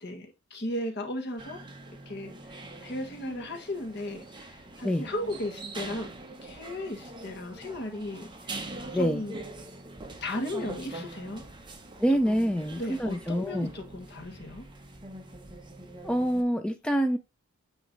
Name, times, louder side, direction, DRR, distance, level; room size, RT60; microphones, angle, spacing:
voice 1, 0.0-1.6 2.0-6.1 6.4-9.4 10.2-11.4 12.1-14.7, left 1 dB, 50° left, 1.5 m, -36 dB
sound 1, 1.4-16.4, right 2 dB, 20° right, 1.0 m, -43 dB
voice 2, 12.0-13.7 16.0-17.2, equal, 5° left, 0.4 m, -26 dB
9.2 x 3.1 x 3.9 m
head